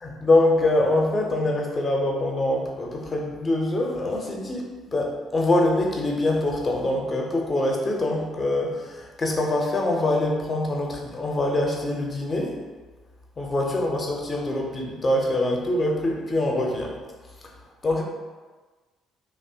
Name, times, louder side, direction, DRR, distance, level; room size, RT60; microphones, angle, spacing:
voice 1, 0.0-12.6 13.4-16.9 17.8-18.0, left 1 dB, 30° left, 0 dB, 0.5 m, -24 dB
2.6 x 2.0 x 2.6 m, 1.3 s
figure-of-eight pair, 45°, 0 cm